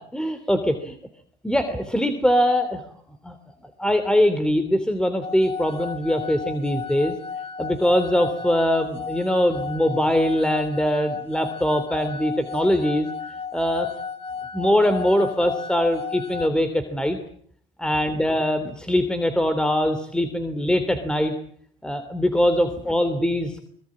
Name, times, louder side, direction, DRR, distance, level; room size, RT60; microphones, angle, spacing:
voice 1, 0.1-0.9 1.4-2.8 3.2-3.4 3.8-7.1 7.6-13.1 13.5-13.9 14.5-17.2 17.8-21.3 21.8-23.6, equal, 5° left, 9 dB, 2.9 m, -22 dB
sound 1, 5.2-16.5, left 6 dB, 35° left, 2.4 m, -34 dB
24.0 x 22.0 x 8.6 m, 0.62 s
cardioid pair, 110°, 17 cm